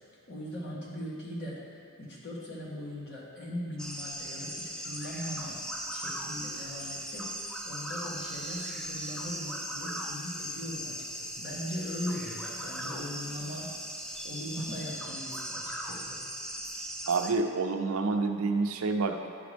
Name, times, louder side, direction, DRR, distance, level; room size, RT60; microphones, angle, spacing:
voice 1, 0.3-1.6 2.0-5.6 5.9-13.7 14.2-16.2, equal, 55° left, -6 dB, 1.4 m, -40 dB
sound 1, 3.8-17.3, equal, 5° left, 0.4 m, -38 dB
voice 2, 17.1-19.3, right 3 dB, 85° right, 4 dB, 0.5 m, -28 dB
10.0 x 5.8 x 3.4 m, 2.3 s
head